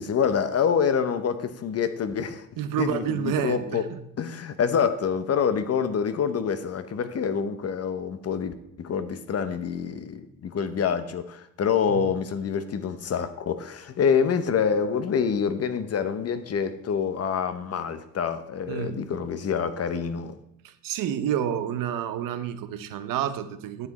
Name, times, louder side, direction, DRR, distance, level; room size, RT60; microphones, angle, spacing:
voice 1, 0.0-2.5 2.8-3.8 4.2-20.4, left 7 dB, 50° left, 11 dB, 0.8 m, -26 dB
voice 2, 2.6-4.0 11.9-12.1 18.7-19.0 20.6-23.9, right 9 dB, 90° right, 10 dB, 0.8 m, -29 dB
9.8 x 7.4 x 4.1 m, 0.79 s
cardioid pair, 100°, 32 cm